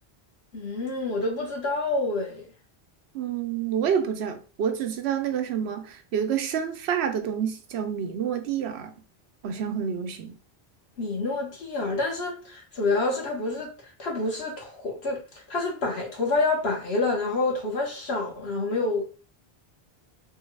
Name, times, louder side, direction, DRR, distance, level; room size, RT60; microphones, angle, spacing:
voice 1, 0.5-2.5 11.0-13.7 14.0-15.2 15.5-19.1, left 3 dB, 80° left, 1.3 m, -27 dB
voice 2, 3.1-8.9 9.4-10.4, right 8 dB, 85° right, 0.8 m, -28 dB
3.4 x 2.3 x 3.2 m
omnidirectional pair, 1.1 m